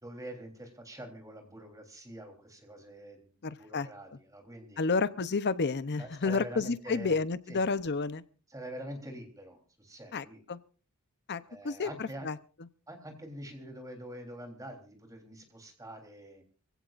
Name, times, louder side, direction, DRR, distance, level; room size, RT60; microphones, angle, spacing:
voice 1, 0.0-4.9 6.0-7.2 7.5-7.7 8.5-10.4 11.5-12.3 12.9-16.4, right 1 dB, 15° right, 3.6 m, -45 dB
voice 2, 3.4-3.9 4.8-8.2 10.1-10.6 11.3-12.4, left 4 dB, 50° left, 0.7 m, -31 dB
25.5 x 16.5 x 2.5 m
head